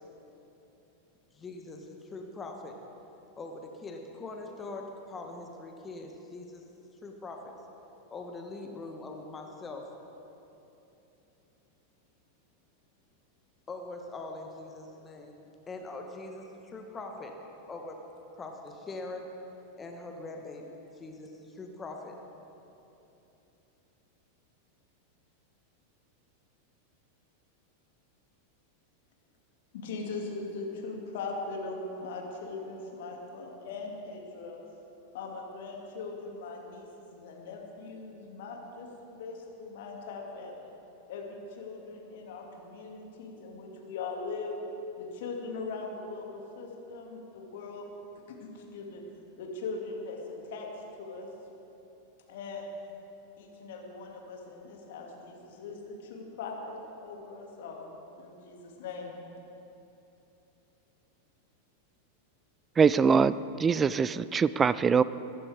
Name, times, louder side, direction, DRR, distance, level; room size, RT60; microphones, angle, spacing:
voice 1, 1.3-2.8 3.4-6.6 7.0-7.5 8.1-9.9 13.7-15.4 15.7-17.3 17.7-18.0 18.4-19.3 19.8-22.2, left 3 dB, 20° left, 2 dB, 1.4 m, -42 dB
voice 2, 29.7-34.6 35.1-38.9 39.2-40.7 41.1-44.6 45.0-47.8 48.3-49.0 49.4-50.7 51.0-51.3 52.3-52.7 53.4-57.9 58.2-59.1, left 3 dB, 55° left, 0 dB, 2.5 m, -40 dB
voice 3, 62.8-65.0, right 6 dB, 20° right, 17 dB, 0.3 m, -23 dB
22.5 x 11.5 x 3.6 m, 3.0 s
figure-of-eight pair, 90°, 0 cm